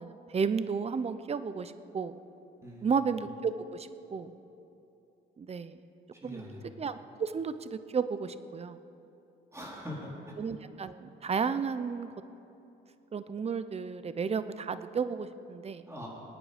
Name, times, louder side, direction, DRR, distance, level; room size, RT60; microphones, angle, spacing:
voice 1, 0.0-2.1 2.8-4.3 5.4-5.8 6.2-6.5 6.8-8.8 10.4-12.1 13.1-15.8, right 5 dB, 30° right, 12 dB, 0.7 m, -33 dB
voice 2, 2.6-3.1 6.2-6.7 9.5-10.1 15.9-16.1, equal, 15° right, -5 dB, 4.2 m, -43 dB
26.0 x 9.1 x 5.1 m, 2.9 s
cardioid pair, 90°, 20 cm